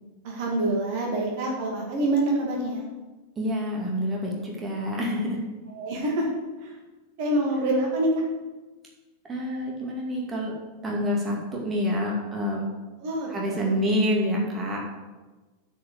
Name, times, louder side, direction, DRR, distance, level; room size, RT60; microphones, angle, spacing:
voice 1, 0.2-2.8 5.7-6.3 6.6-6.7 7.2-8.1 13.0-13.7, right 1 dB, 50° right, -1 dB, 2.1 m, -26 dB
voice 2, 3.4-5.4 9.3-10.5 10.8-12.6 13.3-14.8, equal, 20° right, -2 dB, 2.4 m, -27 dB
8.9 x 5.2 x 7.6 m, 1.2 s
figure-of-eight pair, 90°, 0 cm